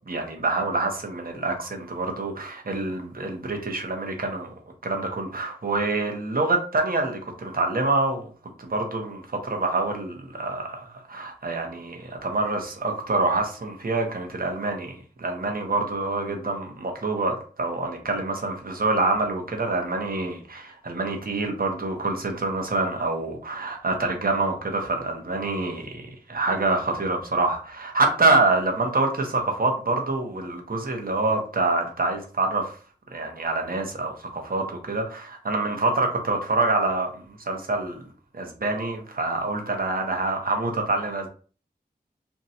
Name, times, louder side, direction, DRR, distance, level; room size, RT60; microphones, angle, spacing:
voice 1, 0.1-4.5 4.8-8.3 8.6-32.7 33.1-38.0 38.3-41.3, right 2 dB, 60° right, 2 dB, 0.8 m, -26 dB
2.7 x 2.2 x 4.0 m, 0.40 s
wide cardioid pair, 60°, 17 cm